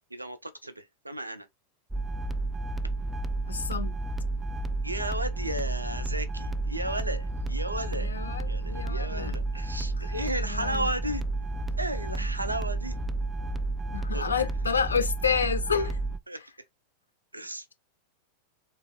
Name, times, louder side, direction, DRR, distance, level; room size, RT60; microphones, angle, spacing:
voice 1, 0.0-1.5 4.8-8.1 8.4-11.2 11.8-13.0 14.1-14.3 15.6-15.9 16.3-16.4 17.3-17.7, right 1 dB, 85° right, 0.5 m, -34 dB
sound 1, 1.9-16.2, right 2 dB, 10° right, 0.3 m, -31 dB
voice 2, 3.5-3.9 8.0-9.3 10.0-10.1 10.4-10.9 13.9-16.0, left 6 dB, 75° left, 0.5 m, -29 dB
3.3 x 2.4 x 3.2 m
figure-of-eight pair, 90°, 0 cm